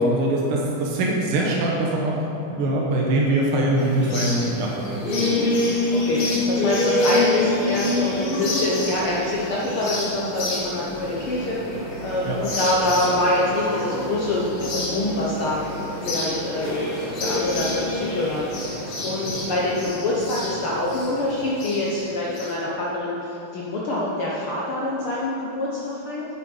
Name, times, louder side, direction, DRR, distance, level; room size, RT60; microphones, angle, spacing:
voice 1, 0.0-2.1 2.5-4.7 12.2-12.4, right 1 dB, 65° right, -3 dB, 1.5 m, -22 dB
sound 1, 3.8-22.5, left 2 dB, 45° left, 2.3 m, -27 dB
voice 2, 5.2-5.5 5.9-6.2 6.5-15.6 16.0-26.2, left 1 dB, 75° left, -5 dB, 1.2 m, -25 dB
9.2 x 8.7 x 5.4 m, 2.9 s
omnidirectional pair, 4.0 m